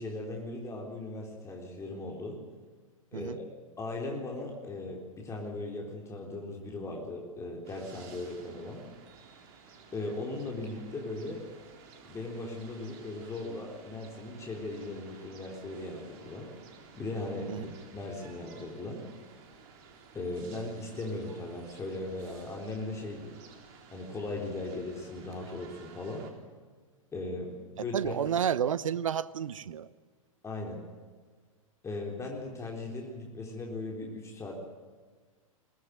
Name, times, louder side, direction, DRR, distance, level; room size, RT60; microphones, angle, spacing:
voice 1, 0.0-2.4 3.1-3.4 3.8-8.8 9.9-11.4 12.0-16.5 16.9-17.7 17.9-19.0 20.1-23.4 23.9-26.3 27.1-28.1 30.4-30.8 31.8-34.5, left 2 dB, 15° left, 3.9 m, -38 dB
sound 1, 7.6-26.3, right 5 dB, 45° right, 3.9 m, -54 dB
voice 2, 27.9-29.9, right 8 dB, 70° right, 0.9 m, -31 dB
22.5 x 18.0 x 9.4 m
figure-of-eight pair, 105°, 18 cm